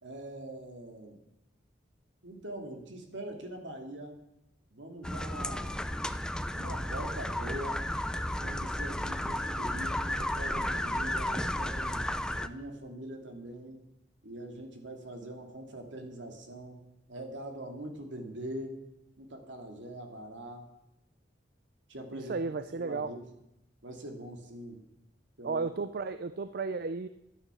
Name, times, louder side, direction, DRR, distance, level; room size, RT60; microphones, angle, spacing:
voice 1, 0.0-1.2 2.2-4.2 4.7-5.8 6.5-7.9 8.4-12.1 12.4-13.8 14.2-18.8 19.2-20.7 21.9-22.4 22.8-23.3 23.8-24.8 25.4-25.7, right 1 dB, 75° right, 4 dB, 2.7 m, -43 dB
sound 1, 5.0-12.5, left 1 dB, 5° left, 0.5 m, -33 dB
voice 2, 22.1-23.1 25.4-27.1, right 4 dB, 55° right, 12 dB, 0.5 m, -34 dB
11.5 x 10.0 x 7.1 m, 0.87 s
head